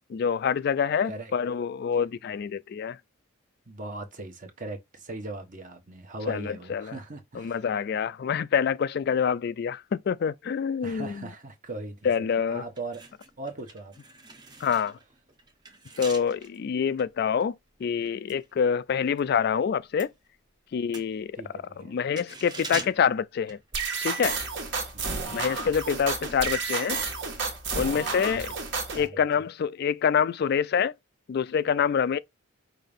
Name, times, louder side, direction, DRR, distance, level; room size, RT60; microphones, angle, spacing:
voice 1, 0.1-3.0 6.3-6.9 7.4-11.2 12.0-12.7 14.6-15.0 16.0-17.5 17.8-20.1 20.7-21.3 21.8-23.6 24.0-24.4 25.3-27.0 27.7-28.5 28.9-30.9 31.3-32.2, left 7 dB, 50° left, 0.3 m, -26 dB
voice 2, 3.6-7.6 10.8-13.0 13.4-13.9 21.3-22.0 24.9-25.4 28.3-28.5 28.9-29.2, right 2 dB, 40° right, 1.2 m, -39 dB
sound 1, 12.7-19.3 19.6-24.2 24.5-24.7, right 3 dB, 20° right, 0.8 m, -44 dB
sound 2, 23.7-29.1, right 4 dB, 55° right, 1.6 m, -31 dB
5.6 x 2.6 x 3.5 m
head